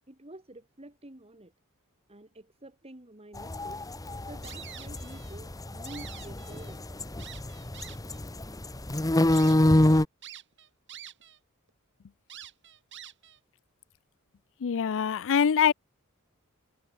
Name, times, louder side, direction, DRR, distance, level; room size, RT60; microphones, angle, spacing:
voice 1, 0.1-1.5 2.1-3.8 4.3-6.8, right 1 dB, 30° right, 3.0 m, -48 dB
sound 1, 3.4-10.0, left 1 dB, 15° left, 1.0 m, -26 dB
sound 2, 4.4-5.4 5.7-6.8 7.2-8.2 8.8-8.9 9.3-9.6 10.2-11.4 11.7-11.8 12.3-13.4, right 11 dB, 55° right, 4.0 m, -47 dB
voice 2, 14.6-15.7, left 7 dB, 60° left, 0.5 m, -24 dB
head